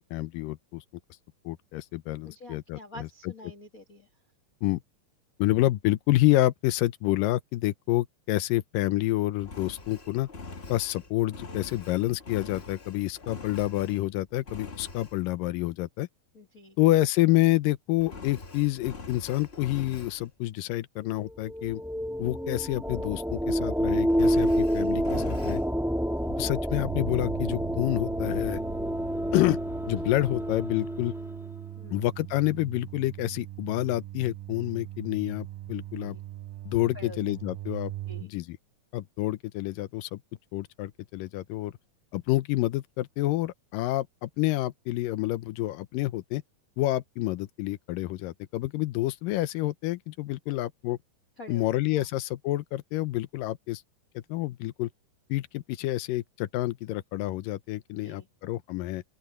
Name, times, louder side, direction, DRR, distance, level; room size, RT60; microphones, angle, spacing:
voice 1, 0.1-0.8 1.5-3.3 4.6-4.8 5.4-10.3 10.7-16.1 16.8-21.8 22.2-25.6 26.3-28.6 29.3-29.6 29.9-31.1 31.9-36.2 36.7-37.9 38.2-38.6 38.9-40.2 40.5-41.7 42.1-46.4 46.8-51.0 51.5-53.8 54.2-54.9 55.3-59.0, left 16 dB, 90° left, 2.5 m, -28 dB
voice 2, 2.2-4.1 16.3-16.8 26.2-26.4 31.8-32.0 36.0-36.2 36.9-37.2 38.1-38.3 50.5-50.6 51.4-51.6 51.9-52.1 58.0-58.3, left 2 dB, 35° left, 1.7 m, -46 dB
Engine, 9.4-14.1 14.4-15.2 18.0-20.3 24.1-25.6, left 3 dB, 60° left, 0.6 m, -43 dB
sound 1, 21.1-31.6, equal, 5° right, 0.4 m, -29 dB
sound 2, 26.8-38.3, right 15 dB, 85° right, 2.3 m, -40 dB
open air
omnidirectional pair, 3.8 m